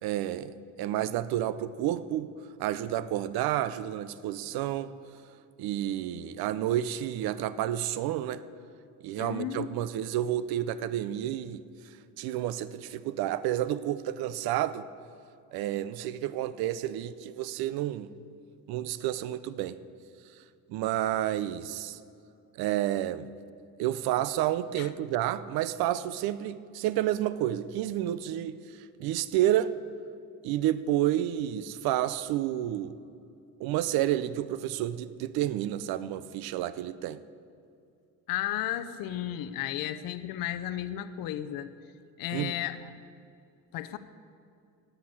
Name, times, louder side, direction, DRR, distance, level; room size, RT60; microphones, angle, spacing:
voice 1, 0.0-2.3 2.6-4.9 5.6-8.4 9.0-11.6 12.2-14.8 15.5-18.1 18.7-19.8 20.7-22.0 22.6-23.3 23.8-28.6 29.0-29.7 30.4-33.0 33.6-37.2 42.3-42.5, right 12 dB, 80° right, 15 dB, 0.6 m, -30 dB
voice 2, 9.2-9.7 24.8-24.9 38.3-41.7 42.2-42.9 43.7-44.0, left 12 dB, 65° left, 11 dB, 0.7 m, -33 dB
10.5 x 8.1 x 8.5 m, 2.5 s
cardioid pair, 150°, 36 cm